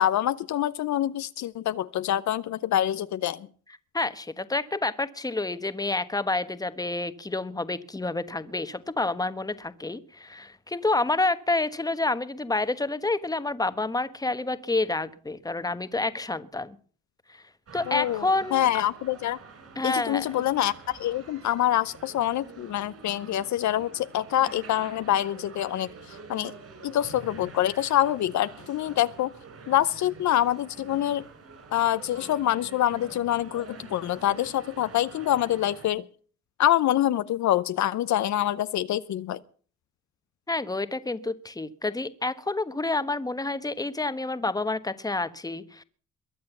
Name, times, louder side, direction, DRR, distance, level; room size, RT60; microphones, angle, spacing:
voice 1, 0.0-3.5 17.9-19.4 19.8-25.9 26.3-26.5 26.8-29.3 29.7-31.2 31.7-36.0 36.6-39.4, left 12 dB, 70° left, 15 dB, 0.7 m, -26 dB
voice 2, 3.9-16.8 17.3-17.4 17.7-18.7 19.8-20.4 40.5-45.8, left 2 dB, 10° left, 12 dB, 1.2 m, -29 dB
sound 1, 17.7-35.9, right 4 dB, 50° right, 6.9 m, -47 dB
22.5 x 7.5 x 7.1 m, 0.43 s
cardioid pair, 90°, 30 cm